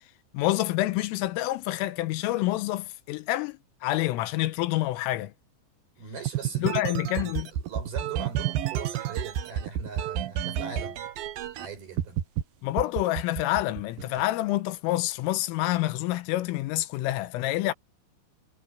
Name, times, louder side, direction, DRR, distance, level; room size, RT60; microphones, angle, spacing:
voice 1, 0.3-5.3 6.6-7.5 12.6-17.7, left 16 dB, 90° left, 3.5 m, -27 dB
voice 2, 6.0-11.0 11.6-12.2, right 5 dB, 50° right, 8.3 m, -40 dB
sound 1, 6.3-11.7 12.0-12.4 12.8-14.2, right 10 dB, 75° right, 2.1 m, -30 dB
omnidirectional pair, 5.9 m